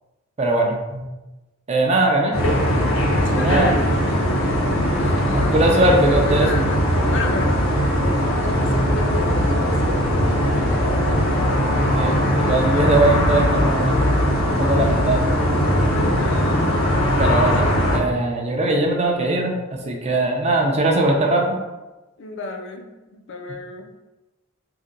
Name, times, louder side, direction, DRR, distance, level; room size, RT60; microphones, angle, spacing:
voice 1, 0.4-1.1 1.7-2.3 3.3-3.7 5.5-6.5 12.0-14.0 14.6-15.3 17.2-21.6, right 2 dB, 30° right, 1 dB, 0.5 m, -20 dB
sound 1, 2.3-18.0, equal, 85° left, 0.8 m, -20 dB
voice 2, 3.2-3.8 4.9-5.6 6.1-6.8 7.1-7.7 8.3-10.8 15.8-16.8 17.1-18.0 22.2-23.9, left 2 dB, 60° left, 3 dB, 0.4 m, -33 dB
2.7 x 2.2 x 3.7 m, 1.1 s
head